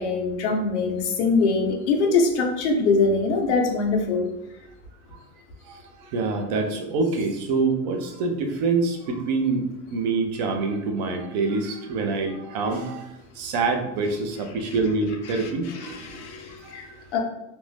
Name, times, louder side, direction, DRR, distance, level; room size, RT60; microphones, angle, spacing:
voice 1, 0.0-4.3 15.3-17.2, left 4 dB, 90° left, 2 dB, 0.8 m, -23 dB
voice 2, 5.6-16.0 16.6-17.0, right 3 dB, 40° right, 4 dB, 0.4 m, -26 dB
2.6 x 2.0 x 3.1 m, 0.90 s
supercardioid pair, 165°, 34 cm